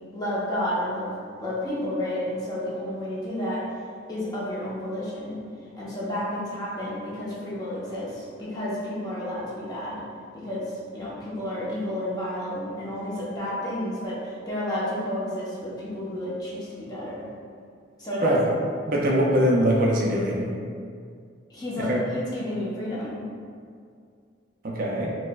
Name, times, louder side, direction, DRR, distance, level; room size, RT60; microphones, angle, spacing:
voice 1, 0.1-1.1 1.4-3.6 4.1-5.4 5.7-10.0 10.3-17.2 18.0-18.4 21.5-23.2, left 1 dB, 20° left, -8 dB, 0.7 m, -31 dB
voice 2, 18.9-20.5 21.9-22.0 24.6-25.2, equal, 45° right, -2 dB, 0.4 m, -22 dB
4.4 x 2.0 x 2.2 m, 2.2 s
head